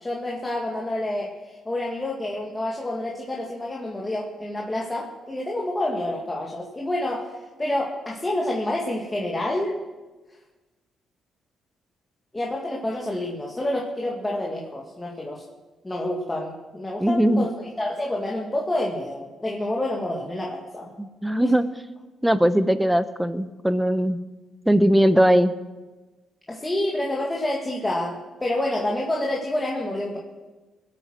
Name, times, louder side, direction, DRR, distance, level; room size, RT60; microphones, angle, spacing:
voice 1, 0.0-9.8 12.3-15.4 15.8-17.5 17.8-20.9 21.4-21.5 26.5-30.2, left 1 dB, 15° left, -2 dB, 2.0 m, -28 dB
voice 2, 17.0-17.5 21.0-21.6 22.2-24.2 24.7-25.5, equal, 5° right, 12 dB, 0.9 m, -20 dB
20.5 x 8.7 x 6.3 m, 1.2 s
cardioid pair, 90°, 0 cm